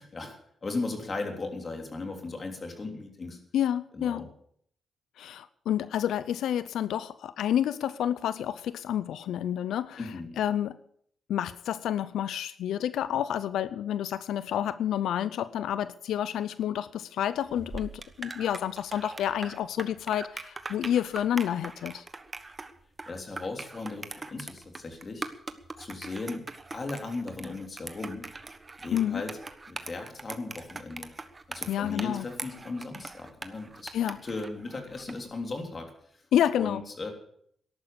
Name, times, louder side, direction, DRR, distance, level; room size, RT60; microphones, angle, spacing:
voice 1, 0.1-3.4 3.9-4.3 10.0-10.4 23.1-25.3 25.8-26.4 26.7-28.2 28.8-29.3 29.7-31.1 31.5-33.9 34.2-35.9 36.6-37.1, left 3 dB, 40° left, 4 dB, 3.4 m, -37 dB
voice 2, 3.5-4.3 5.2-10.1 10.4-10.8 11.3-22.0 28.9-29.2 31.7-32.3 33.9-34.2 36.3-36.8, left 10 dB, 90° left, 16 dB, 0.5 m, -29 dB
sound 1, 17.5-35.2, right 3 dB, 30° right, 1.3 m, -42 dB
13.5 x 11.5 x 6.9 m, 0.65 s
cardioid pair, 90°, 0 cm